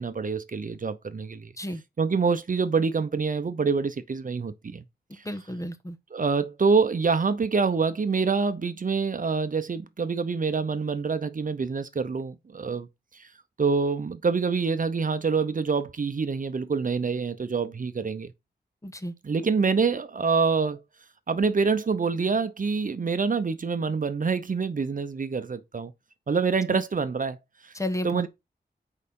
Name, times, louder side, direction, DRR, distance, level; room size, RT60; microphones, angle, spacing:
voice 1, 0.0-1.5 2.0-4.8 6.1-12.9 13.2-13.3 13.6-18.3 19.2-20.8 21.3-25.9 26.3-27.4 27.6-27.7 28.0-28.3, right 5 dB, 50° right, 0.8 m, -26 dB
voice 2, 5.1-6.0 18.8-19.1 26.7-26.8 27.7-28.2, left 1 dB, 20° left, 1.1 m, -32 dB
6.5 x 4.9 x 5.3 m
wide cardioid pair, 110°, 17 cm